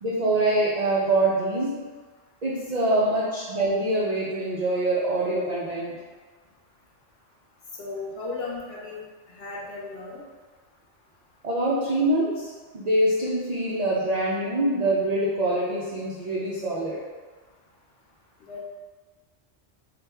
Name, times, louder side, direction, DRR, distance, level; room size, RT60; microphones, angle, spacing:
voice 1, 0.0-1.8 2.4-6.0 11.4-17.0, right 1 dB, 80° right, -6 dB, 0.3 m, -24 dB
voice 2, 7.8-9.0 9.3-10.2 18.5-18.6, left 3 dB, 60° left, -4 dB, 0.8 m, -35 dB
3.2 x 2.1 x 3.3 m, 1.4 s
omnidirectional pair, 1.3 m